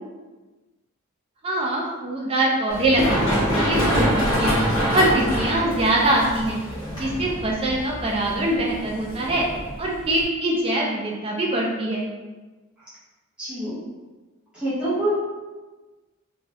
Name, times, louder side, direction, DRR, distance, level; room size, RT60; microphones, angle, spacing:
voice 1, 1.4-4.6 4.9-6.6 6.9-9.4 9.8-12.0, right 1 dB, 25° right, -2 dB, 0.4 m, -23 dB
Run, 2.7-10.2, equal, 20° left, 1.2 m, -25 dB
voice 2, 13.4-13.7 14.5-15.2, right 1 dB, 5° right, -12 dB, 0.9 m, -25 dB
2.6 x 2.3 x 3.3 m, 1.2 s
head